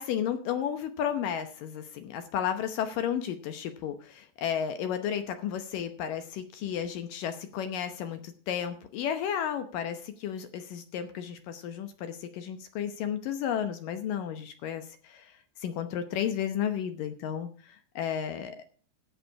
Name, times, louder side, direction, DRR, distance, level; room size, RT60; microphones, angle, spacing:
voice 1, 0.0-15.3 15.6-18.6, left 9 dB, 75° left, 8 dB, 2.0 m, -33 dB
14.0 x 8.2 x 4.7 m, 0.43 s
omnidirectional pair, 5.1 m